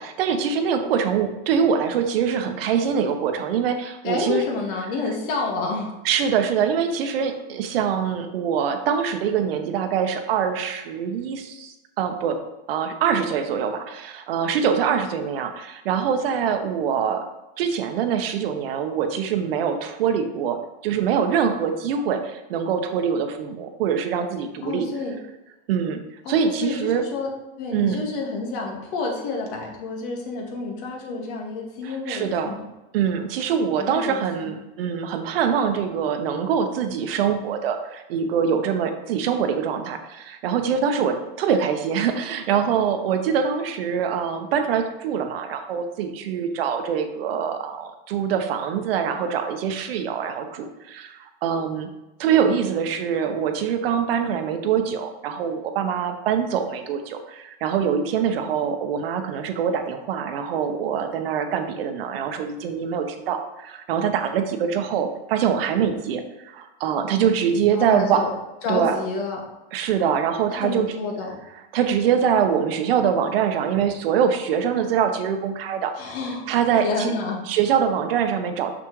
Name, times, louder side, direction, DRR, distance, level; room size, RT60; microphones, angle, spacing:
voice 1, 0.0-4.5 6.0-12.4 12.7-17.2 17.6-24.9 25.7-27.0 27.7-28.0 31.8-32.5 32.9-51.9 52.2-68.2 68.7-68.9 69.7-70.9 71.7-76.1 76.5-77.1 77.5-78.7, right 7 dB, 80° right, 6 dB, 1.1 m, -24 dB
voice 2, 4.0-5.9 24.6-25.2 26.2-27.3 27.6-32.6 33.8-34.5 67.6-68.3 68.6-69.4 70.5-71.4 76.0-76.5 76.8-77.4, left 3 dB, 65° left, 0 dB, 2.2 m, -29 dB
6.6 x 6.1 x 3.2 m, 1.0 s
supercardioid pair, 140°, 29 cm